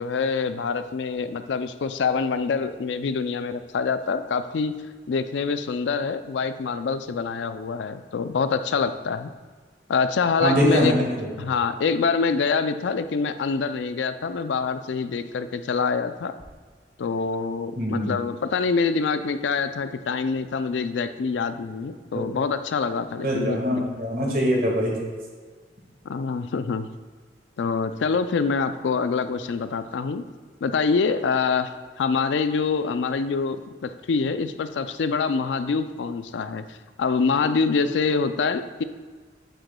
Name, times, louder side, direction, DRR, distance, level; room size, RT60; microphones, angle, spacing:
voice 1, 0.0-4.7 5.1-9.3 9.9-10.9 11.4-16.3 17.0-23.6 26.0-26.9 27.6-30.2 30.6-38.8, left 5 dB, 85° left, 11 dB, 0.4 m, -25 dB
voice 2, 10.4-11.3 17.7-18.1 22.1-22.2 23.2-24.9, equal, 50° right, -1 dB, 1.6 m, -23 dB
8.9 x 7.8 x 2.3 m, 1.5 s
head